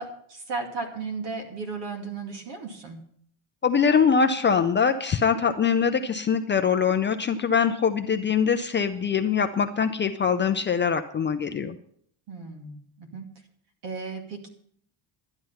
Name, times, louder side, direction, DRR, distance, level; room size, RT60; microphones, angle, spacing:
voice 1, 0.0-3.0 12.3-13.3 13.8-14.5, right 4 dB, 60° right, 4 dB, 2.5 m, -35 dB
voice 2, 3.6-11.8, left 6 dB, 25° left, 7 dB, 0.4 m, -23 dB
11.5 x 10.5 x 5.6 m, 0.64 s
cardioid pair, 165°, 46 cm